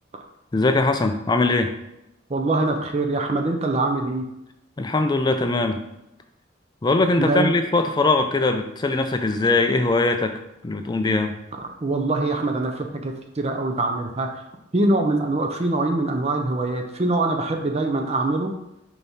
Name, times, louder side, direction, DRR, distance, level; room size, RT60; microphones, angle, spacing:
voice 1, 0.5-1.7 4.8-5.8 6.8-11.4, left 3 dB, 20° left, 7 dB, 0.4 m, -21 dB
voice 2, 2.3-4.2 7.2-7.5 11.6-14.3 14.7-18.5, right 2 dB, 35° right, 3 dB, 0.6 m, -23 dB
5.2 x 4.5 x 4.1 m, 0.88 s
head